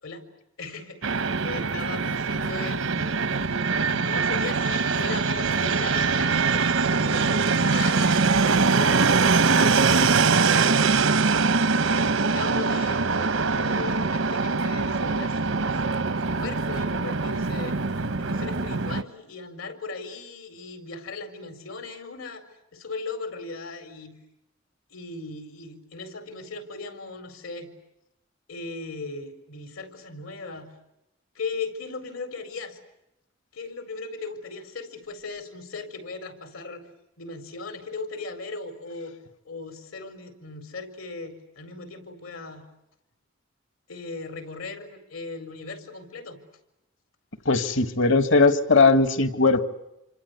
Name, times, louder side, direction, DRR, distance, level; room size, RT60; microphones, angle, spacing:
voice 1, 0.6-3.2 3.9-10.9 11.7-17.8 18.2-22.5 22.7-24.2 24.9-27.7 28.5-30.7 31.3-32.8 33.5-36.9 37.2-39.2 39.4-42.6 43.9-46.4, left 3 dB, 85° left, 8 dB, 4.6 m, -38 dB
Fixed-wing aircraft airplane, 1.0-19.0, right 4 dB, 85° right, 0.9 m, -23 dB
voice 2, 47.5-49.6, left 3 dB, 70° left, 10 dB, 1.8 m, -19 dB
27.0 x 25.5 x 8.2 m, 0.89 s
head